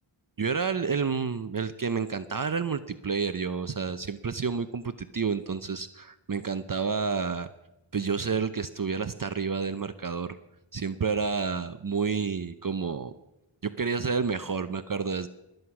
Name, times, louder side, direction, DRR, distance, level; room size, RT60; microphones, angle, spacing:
voice 1, 0.4-7.5 7.9-10.4 10.7-13.1 13.6-15.3, right 5 dB, 40° right, 11 dB, 0.7 m, -30 dB
21.0 x 8.0 x 5.9 m, 0.92 s
wide cardioid pair, 55°, 50 cm